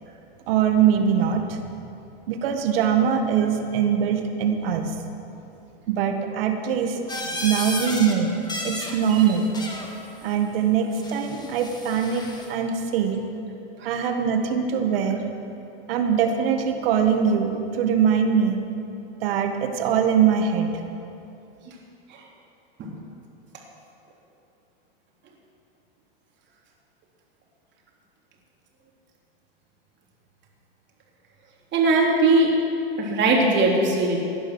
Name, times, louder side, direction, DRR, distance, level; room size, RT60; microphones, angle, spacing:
voice 1, 0.5-1.6 2.3-4.9 5.9-7.0 7.2-8.3 8.6-9.5 10.2-13.2 13.8-15.2 15.9-18.6 19.2-20.7, right 7 dB, 70° right, 5 dB, 1.8 m, -22 dB
sound 1, 7.1-8.1 8.4-9.9 11.0-12.5, left 1 dB, 15° left, 2.1 m, -33 dB
voice 2, 31.7-32.5 33.0-34.2, right 2 dB, 35° right, -2 dB, 3.4 m, -19 dB
16.0 x 11.0 x 6.3 m, 2.8 s
hypercardioid pair, 115°, 30 cm